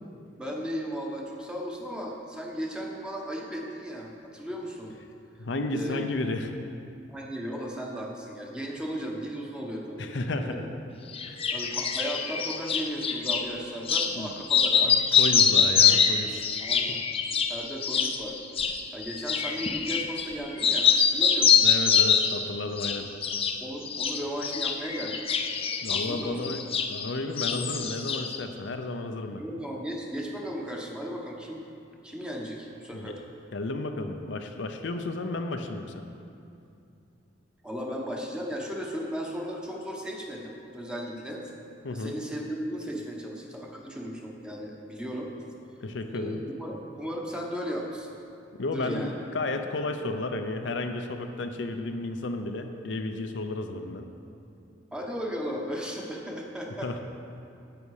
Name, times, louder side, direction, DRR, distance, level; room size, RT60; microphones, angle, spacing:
voice 1, 0.4-4.9 5.7-6.1 7.1-10.1 10.4-10.7 11.5-14.9 15.3-15.7 16.6-17.0 17.3-18.4 18.9-21.6 23.6-25.4 25.9-26.6 29.4-31.6 32.0-33.2 37.6-41.5 41.9-45.3 46.1-48.2 48.7-49.1 54.9-57.0, equal, 5° right, -1 dB, 1.1 m, -36 dB
voice 2, 5.4-6.5 10.0-10.7 11.3-11.4 14.1-14.3 14.8-16.5 16.9-17.0 21.6-23.1 25.8-26.6 26.9-29.4 32.9-33.1 33.5-36.0 41.8-42.2 45.8-46.4 48.5-54.1 56.8-57.0, left 2 dB, 70° left, 5 dB, 0.6 m, -32 dB
sound 1, 11.1-13.4 13.9-14.1 14.4-20.3 20.6-22.4 22.8-23.6 23.9-27.1 27.4-28.4, left 7 dB, 30° left, 0.6 m, -24 dB
10.5 x 7.9 x 4.9 m, 2.6 s
head